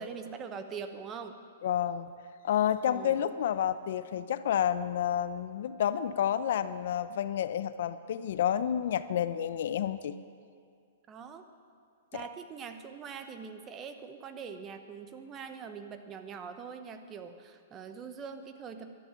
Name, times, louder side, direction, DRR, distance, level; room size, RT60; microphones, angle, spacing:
voice 1, 0.0-1.4 2.9-3.2 11.1-11.5 12.1-18.9, right 6 dB, 20° right, 8 dB, 0.8 m, -43 dB
voice 2, 1.6-2.1 2.4-10.1 12.1-12.2, left 10 dB, 60° left, 14 dB, 0.6 m, -30 dB
11.5 x 10.5 x 9.1 m, 2.2 s
hypercardioid pair, 160°, 0 cm